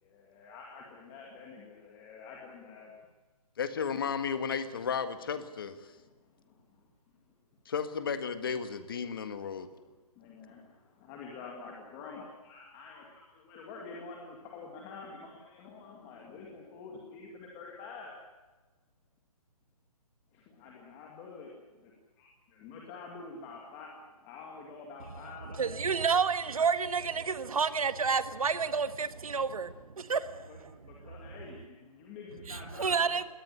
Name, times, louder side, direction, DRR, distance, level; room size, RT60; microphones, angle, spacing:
voice 1, 0.0-2.9 6.5-6.6 9.9-18.1 20.3-21.5 21.8-21.9 22.2-23.9 24.2-25.9 30.2-30.6 30.8-33.2, left 4 dB, 15° left, 2.0 m, -47 dB
voice 2, 3.6-5.8 7.6-9.7, left 6 dB, 35° left, 1.7 m, -33 dB
voice 3, 25.6-31.1 32.5-33.2, right 5 dB, 65° right, 1.6 m, -30 dB
21.0 x 18.5 x 9.7 m
hypercardioid pair, 175°, 19 cm